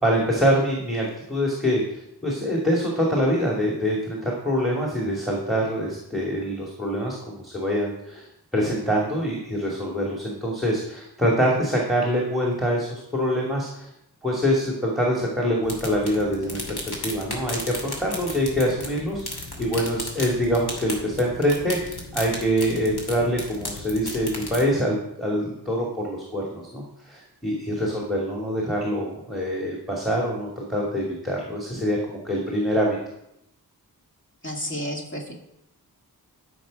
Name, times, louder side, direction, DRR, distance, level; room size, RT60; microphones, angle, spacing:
voice 1, 0.0-8.3 8.5-13.9 14.2-33.0, equal, ahead, -3 dB, 2.4 m, -25 dB
sound 1, 15.6-24.7, left 2 dB, 80° left, 2.6 m, -35 dB
voice 2, 34.4-35.3, equal, 30° left, -1 dB, 2.5 m, -31 dB
13.0 x 6.4 x 5.2 m, 0.81 s
wide cardioid pair, 105°, 38 cm